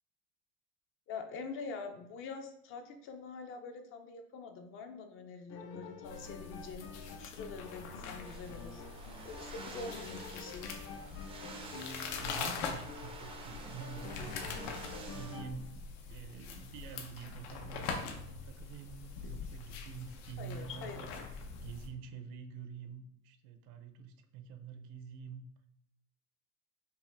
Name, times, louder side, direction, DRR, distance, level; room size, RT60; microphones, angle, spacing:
voice 1, 1.1-8.8 9.2-10.7 20.4-21.1, left 4 dB, 40° left, 6 dB, 0.5 m, -45 dB
sound 1, 5.5-15.5, left 4 dB, 60° left, 0.9 m, -48 dB
sound 2, 6.0-21.9, left 5 dB, 90° left, 0.8 m, -44 dB
sound 3, 8.2-15.4, right 4 dB, 15° right, 0.4 m, -51 dB
voice 2, 12.2-15.7 16.1-21.1 21.6-25.7, right 6 dB, 65° right, 8 dB, 0.6 m, -47 dB
5.4 x 2.4 x 3.3 m, 0.78 s
cardioid pair, 155°, 33 cm